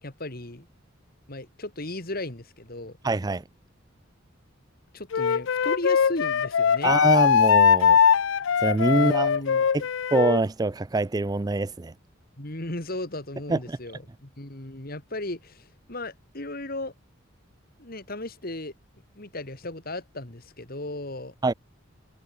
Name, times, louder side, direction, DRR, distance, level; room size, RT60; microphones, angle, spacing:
voice 1, 0.0-0.7 1.3-3.0 4.9-6.9 8.9-9.7 12.4-16.9 17.8-18.7 19.1-21.3, left 1 dB, 45° left, 2.9 m, -36 dB
voice 2, 3.0-3.4 6.8-8.0 8.6-9.3 10.1-11.9 13.5-13.8 21.4-21.5, right 2 dB, 20° right, 0.4 m, -24 dB
Wind instrument woodwind instrument, 5.1-10.4, left 7 dB, 65° left, 0.4 m, -21 dB
head